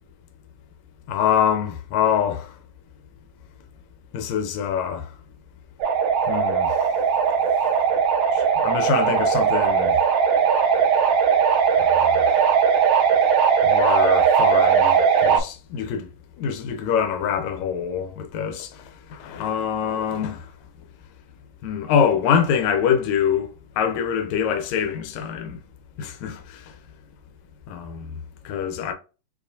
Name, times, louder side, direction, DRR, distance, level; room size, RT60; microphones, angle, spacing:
voice 1, 1.1-2.5 4.1-5.1 6.3-6.8 8.3-10.0 11.8-12.5 13.6-16.1 16.4-18.8 19.1-20.5 21.6-23.5 23.8-25.6 26.0-26.7 27.7-28.1 28.5-28.9, left 8 dB, 85° left, 1.6 m, -25 dB
sound 1, 5.8-15.4, right 7 dB, 75° right, 1.4 m, -19 dB
7.1 x 2.4 x 2.6 m
omnidirectional pair, 4.1 m